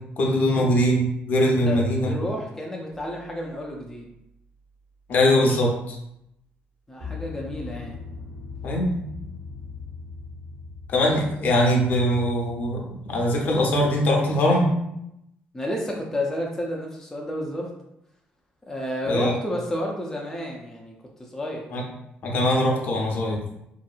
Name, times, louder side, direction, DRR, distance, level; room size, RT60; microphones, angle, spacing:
voice 1, 0.2-2.1 5.1-6.0 8.6-8.9 10.9-12.8 13.1-14.7 19.0-19.3 21.7-21.8 22.2-23.4, left 1 dB, 55° left, -1 dB, 0.7 m, -21 dB
voice 2, 1.5-4.1 6.9-8.0 15.5-17.7 18.7-20.9 21.2-21.7, left 1 dB, 10° left, -2 dB, 0.4 m, -31 dB
sound 1, 2.9-3.1 7.0-13.8, left 5 dB, 55° right, 1.0 m, -40 dB
2.7 x 2.5 x 2.3 m, 0.80 s
cardioid pair, 110°, 4 cm